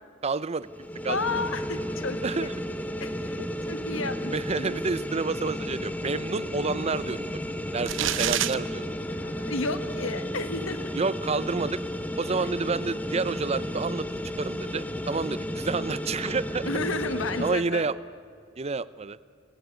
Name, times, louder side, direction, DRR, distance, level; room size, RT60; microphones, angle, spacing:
voice 1, 0.2-1.2 2.2-2.5 3.4-3.5 4.3-7.4 7.7-8.9 10.9-11.8 12.2-14.1 14.4-16.7 17.4-18.0 18.6-19.2, right 4 dB, 30° right, 17 dB, 0.6 m, -29 dB
sound 1, 0.6-17.5, equal, 10° left, 0.9 m, -33 dB
voice 2, 1.1-2.5 3.0-4.8 9.1-10.9 16.6-17.9, left 3 dB, 85° left, 10 dB, 1.5 m, -32 dB
sound 2, 7.9-8.5, right 11 dB, 70° right, 0.8 m, -26 dB
23.0 x 18.5 x 9.3 m, 2.2 s
head